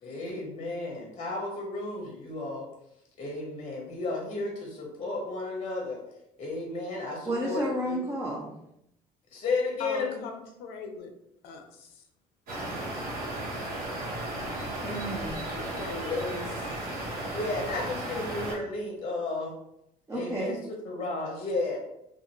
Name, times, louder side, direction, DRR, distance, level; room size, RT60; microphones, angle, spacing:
voice 1, 0.0-2.7 3.2-6.0 6.4-8.0 9.3-10.2 16.1-16.5 17.2-19.5 20.1-21.8, left 3 dB, 35° left, 0 dB, 0.8 m, -33 dB
voice 2, 7.2-8.5 14.8-15.4 20.1-20.6, right 1 dB, 15° right, -4 dB, 0.6 m, -31 dB
voice 3, 9.8-11.1 11.4-12.0 15.5-16.1, left 4 dB, 75° left, 4 dB, 0.6 m, -40 dB
sound 1, 12.5-18.5, right 1 dB, 65° right, 1.2 m, -35 dB
2.5 x 2.4 x 2.9 m, 0.80 s
supercardioid pair, 90°, 17 cm